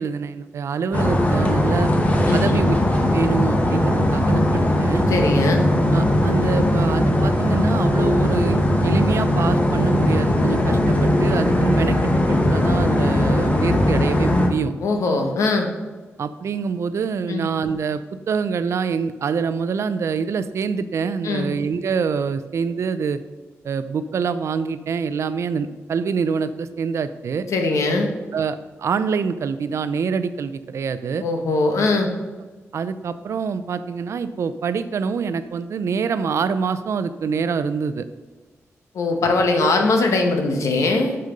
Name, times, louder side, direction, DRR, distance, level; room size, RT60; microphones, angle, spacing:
voice 1, 0.0-1.9 2.3-2.7 3.1-5.0 5.9-14.7 16.2-18.0 18.3-23.2 23.6-27.5 28.3-31.2 32.7-38.1 39.6-39.7, right 6 dB, 70° right, 12 dB, 0.5 m, -25 dB
sound 1, 0.9-14.5, left 1 dB, 30° left, 1.1 m, -19 dB
voice 2, 2.3-2.6 5.1-5.6 14.8-15.7 17.3-17.4 21.2-21.5 27.5-28.1 31.2-32.1 38.9-41.2, left 3 dB, 85° left, 4 dB, 1.2 m, -21 dB
6.8 x 6.6 x 5.1 m, 1.3 s
wide cardioid pair, 120°, 5 cm